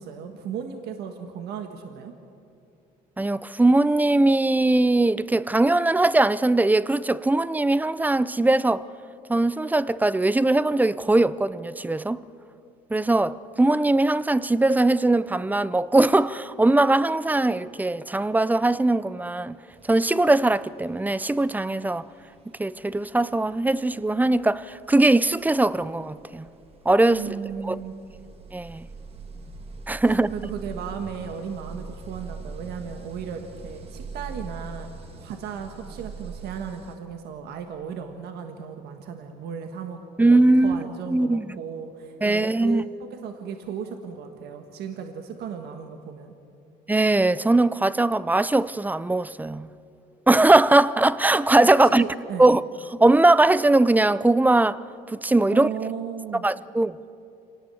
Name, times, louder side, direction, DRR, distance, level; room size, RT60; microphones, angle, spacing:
voice 1, 0.0-2.1 27.1-27.9 30.3-34.9 35.2-46.3 51.8-52.5 55.5-56.5, right 7 dB, 75° right, 1.6 m, -35 dB
voice 2, 3.2-8.9 9.3-12.2 12.9-19.6 19.9-22.1 22.6-26.5 26.9-27.4 27.6-27.8 28.5-28.9 29.9-30.3 40.2-41.5 42.2-42.8 46.9-49.7 50.3-52.0 52.4-52.6 52.9-54.8 55.1-55.7 56.4-57.0, right 2 dB, 10° right, 0.5 m, -20 dB
sound 1, 19.2-19.3 19.7-37.0, right 4 dB, 35° right, 2.0 m, -43 dB
26.5 x 18.5 x 7.1 m
cardioid pair, 110°, 17 cm